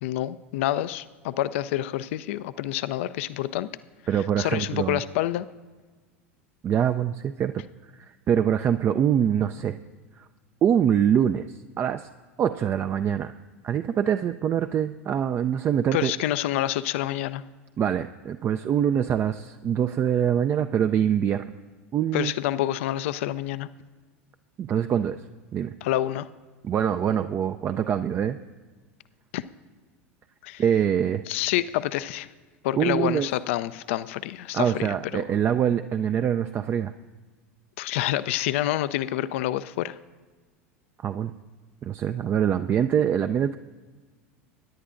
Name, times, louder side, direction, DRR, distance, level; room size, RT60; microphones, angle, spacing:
voice 1, 0.0-3.7 4.4-5.5 15.9-17.4 22.1-23.7 25.8-26.3 29.3-29.4 30.4-30.6 31.3-32.3 32.6-34.9 35.1-35.2 37.8-40.0, left 14 dB, 65° left, 15 dB, 0.4 m, -27 dB
voice 2, 4.1-5.0 6.6-7.6 7.9-9.7 10.2-10.3 10.6-12.1 12.4-13.3 13.6-16.1 17.8-21.5 21.9-22.3 24.6-25.2 25.5-25.7 26.6-28.4 30.6-31.2 32.8-33.3 34.5-36.9 41.0-41.3 41.8-43.6, right 9 dB, 30° right, 9 dB, 0.4 m, -24 dB
22.5 x 10.0 x 2.5 m, 1.3 s
hypercardioid pair, 85°, 7 cm